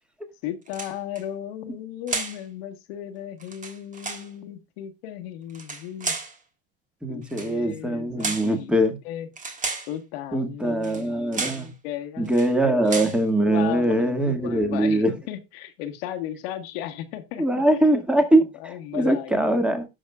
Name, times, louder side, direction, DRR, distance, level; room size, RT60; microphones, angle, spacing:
voice 1, 0.4-6.2 7.1-9.3 9.9-11.3 11.8-12.3 12.8-12.9 13.4-17.6 18.6-19.6, left 11 dB, 80° left, 1.4 m, -35 dB
sound 1, 0.7-1.2 2.1-2.4 3.4-4.3 5.5-6.4 7.3-7.5 8.2-8.5 9.4-9.9 10.8-11.0 11.3-11.7 12.3-12.5 12.9-13.2, right 4 dB, 25° right, 1.8 m, -32 dB
voice 2, 7.0-9.0 10.3-11.7 12.2-15.1 17.4-19.9, right 1 dB, 5° right, 1.8 m, -22 dB
17.0 x 6.2 x 2.3 m
supercardioid pair, 105°, 30 cm